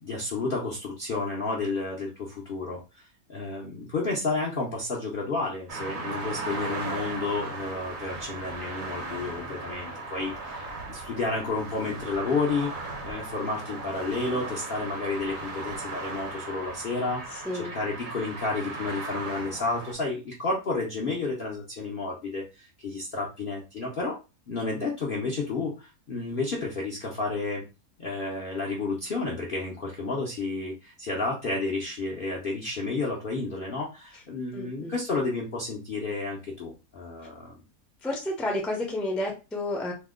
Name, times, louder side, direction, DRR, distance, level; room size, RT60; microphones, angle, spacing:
voice 1, 0.0-12.7 13.0-24.1 24.5-27.6 28.0-37.6, left 3 dB, 55° left, -3 dB, 0.6 m, -31 dB
sound 1, 5.7-19.9, right 3 dB, 65° right, 1.1 m, -37 dB
voice 2, 34.5-34.9 38.0-39.9, left 1 dB, ahead, -1 dB, 0.4 m, -30 dB
2.8 x 2.1 x 3.5 m, 0.29 s
omnidirectional pair, 1.7 m